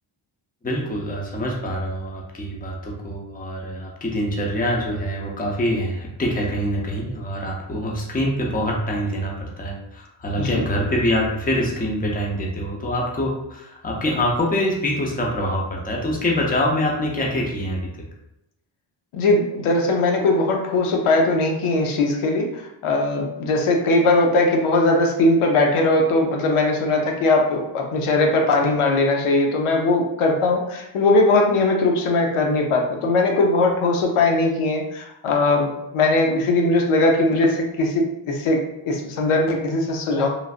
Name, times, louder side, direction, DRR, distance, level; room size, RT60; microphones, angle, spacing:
voice 1, 0.6-17.8, equal, 20° left, -1 dB, 0.6 m, -25 dB
voice 2, 19.1-40.3, left 2 dB, 85° left, 1 dB, 0.7 m, -20 dB
3.2 x 2.5 x 2.4 m, 0.88 s
wide cardioid pair, 110°, 49 cm